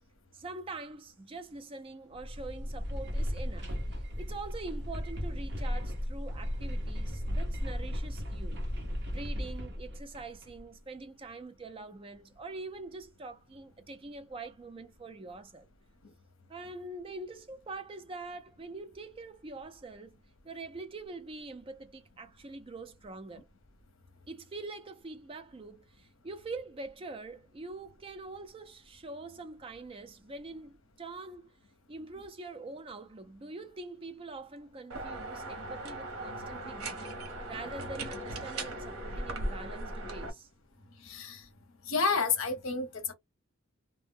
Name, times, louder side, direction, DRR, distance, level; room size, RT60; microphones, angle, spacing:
voice 1, 0.3-3.7 4.2-8.6 9.1-15.7 16.5-23.5 24.3-31.5 31.9-40.5, right 3 dB, 25° right, 0.4 m, -44 dB
sound 1, 2.1-10.6, equal, 55° right, 0.7 m, -35 dB
sound 2, 34.9-40.3, right 1 dB, 90° right, 0.8 m, -38 dB
voice 2, 41.0-41.5 41.9-43.1, left 5 dB, 65° left, 0.7 m, -30 dB
2.1 x 2.0 x 3.5 m
head